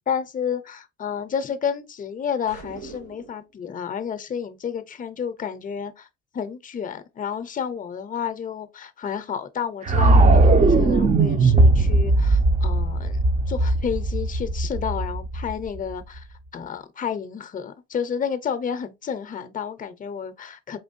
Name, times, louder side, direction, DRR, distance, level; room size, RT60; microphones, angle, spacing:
voice 1, 0.1-6.1 6.3-13.2 13.5-16.3 16.5-20.8, left 7 dB, 30° left, 0.5 m, -30 dB
sound 1, 2.5-3.5, right 4 dB, 80° right, 2.2 m, -41 dB
sound 2, 9.9-15.9, right 2 dB, 25° right, 0.4 m, -18 dB
4.4 x 3.0 x 2.5 m
cardioid pair, 150°, 30 cm